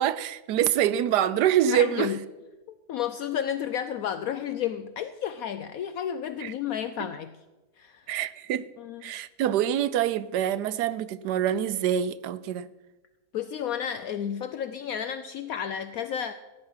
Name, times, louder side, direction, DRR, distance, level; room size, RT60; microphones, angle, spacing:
voice 1, 0.0-2.1 6.4-6.5 8.1-8.7 9.0-12.7, right 10 dB, 90° right, 1.2 m, -25 dB
voice 2, 1.7-2.2 2.7-7.3 7.8-8.1 8.8-9.0 13.3-16.3, left 9 dB, 70° left, 1.0 m, -32 dB
15.5 x 10.0 x 5.7 m
omnidirectional pair, 1.7 m